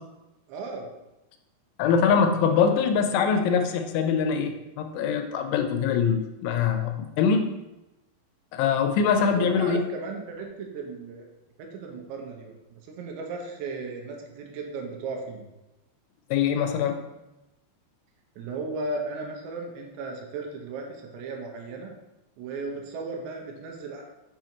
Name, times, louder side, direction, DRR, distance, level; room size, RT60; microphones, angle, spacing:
voice 1, 0.5-0.9 9.1-11.3 11.6-15.4 18.4-21.9 22.4-24.0, right 3 dB, 80° right, 2 dB, 3.0 m, -36 dB
voice 2, 1.8-7.5 8.5-9.8 16.3-17.0, left 6 dB, 85° left, 6 dB, 3.0 m, -23 dB
7.0 x 3.8 x 4.4 m, 0.98 s
omnidirectional pair, 5.3 m